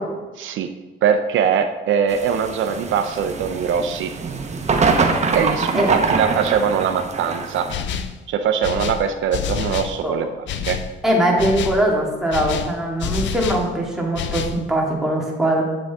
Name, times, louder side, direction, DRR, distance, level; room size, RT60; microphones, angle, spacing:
voice 1, 0.4-0.7 1.0-4.1 5.3-7.7 8.3-10.8, right 7 dB, 75° right, 7 dB, 0.6 m, -22 dB
sound 1, 2.1-7.7, right 4 dB, 35° right, 0.9 m, -23 dB
sound 2, 7.7-8.2 8.6-10.0 10.5-10.9 11.4-11.8 12.3-13.7 14.2-14.6, left 8 dB, 70° left, 0.5 m, -27 dB
voice 2, 11.0-15.6, right 1 dB, 5° right, -3 dB, 2.0 m, -21 dB
7.7 x 6.1 x 3.5 m, 1.2 s
cardioid pair, 90°, 20 cm